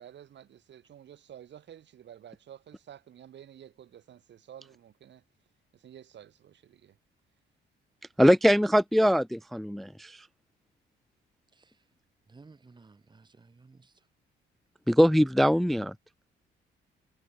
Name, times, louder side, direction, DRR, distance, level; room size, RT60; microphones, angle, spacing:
voice 1, 0.0-5.2 5.7-7.0, right 10 dB, 65° right, 3.3 m, -51 dB
voice 2, 8.2-10.3 14.9-15.9, equal, ahead, 0.5 m, -22 dB
voice 3, 12.3-13.9, right 4 dB, 20° right, 1.7 m, -56 dB
cardioid pair, 90°, 20 cm